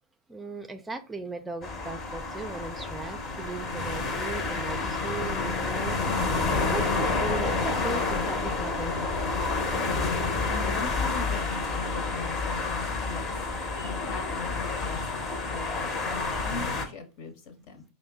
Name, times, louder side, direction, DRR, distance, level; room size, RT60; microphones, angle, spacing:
voice 1, 0.3-6.0 6.3-6.4 6.7-9.0, right 3 dB, 15° right, 7 dB, 0.4 m, -37 dB
sound 1, 1.6-16.8, left 3 dB, 35° left, 0.9 m, -29 dB
voice 2, 10.4-13.3 13.8-17.8, left 4 dB, 55° left, 6 dB, 1.1 m, -40 dB
5.1 x 2.1 x 3.4 m, 0.33 s
hypercardioid pair, 95°, 0 cm